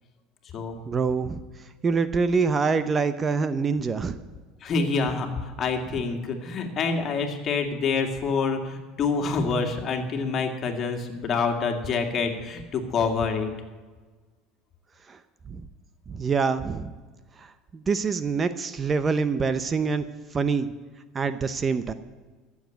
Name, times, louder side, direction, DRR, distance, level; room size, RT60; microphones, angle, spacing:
voice 1, 0.9-1.4 1.8-4.2 15.1-15.2 15.5-15.7 16.1-16.9 17.4-20.0 20.3-20.7 21.1-21.9, right 5 dB, 25° right, 12 dB, 0.7 m, -25 dB
voice 2, 4.6-13.5, left 4 dB, 40° left, 4 dB, 2.2 m, -27 dB
14.5 x 7.3 x 9.0 m, 1.4 s
supercardioid pair, 110°, 0 cm